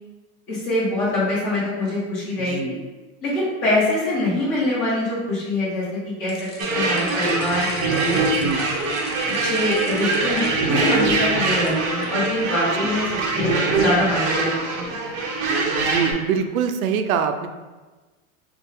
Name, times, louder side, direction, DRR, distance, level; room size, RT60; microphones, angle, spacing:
voice 1, 0.5-2.7 3.2-8.6 9.2-13.1 13.3-14.9, left 1 dB, 30° left, -8 dB, 1.4 m, -24 dB
voice 2, 2.5-2.8 8.3-8.7 12.8-12.9 15.7-17.5, right 7 dB, 80° right, 8 dB, 0.5 m, -24 dB
sound 1, 6.3-12.3, left 4 dB, 50° left, 0.8 m, -41 dB
sound 2, 6.6-16.1, right 3 dB, 35° right, 0.6 m, -23 dB
4.2 x 2.4 x 3.4 m, 1.2 s
supercardioid pair, 160°, 41 cm